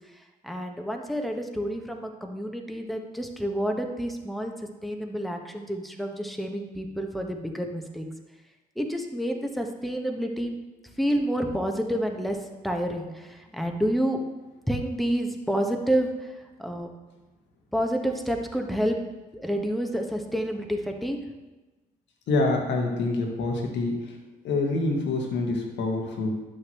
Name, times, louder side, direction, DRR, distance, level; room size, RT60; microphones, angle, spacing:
voice 1, 0.4-4.5 4.8-8.1 8.8-10.6 11.0-12.4 12.6-14.2 14.7-16.1 16.6-16.9 17.7-19.0 19.4-21.2, equal, ahead, 3 dB, 1.4 m, -29 dB
voice 2, 22.3-24.1 24.4-26.3, left 2 dB, 65° left, 1 dB, 1.6 m, -26 dB
11.0 x 6.6 x 3.1 m, 1.1 s
hypercardioid pair, 40°, 20 cm